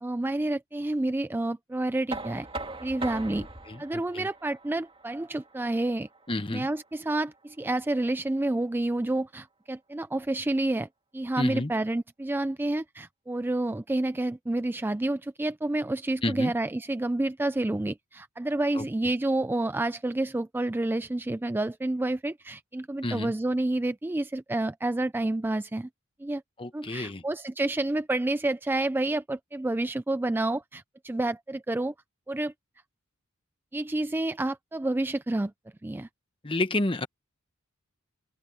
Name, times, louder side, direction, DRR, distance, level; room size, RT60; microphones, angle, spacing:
voice 1, 0.0-2.5 2.8-3.5 3.8-6.1 6.5-10.9 11.1-25.9 26.2-26.4 26.7-31.9 32.3-32.5 33.7-35.5 35.8-36.1, right 2 dB, 10° right, 0.3 m, -29 dB
Knock, 2.1-7.9, right 2 dB, 25° right, 2.2 m, -41 dB
voice 2, 3.7-4.3 6.3-6.7 11.4-11.7 16.2-16.5 18.7-18.8 23.0-23.3 26.6-27.2 36.4-37.1, left 2 dB, 25° left, 1.2 m, -30 dB
open air
head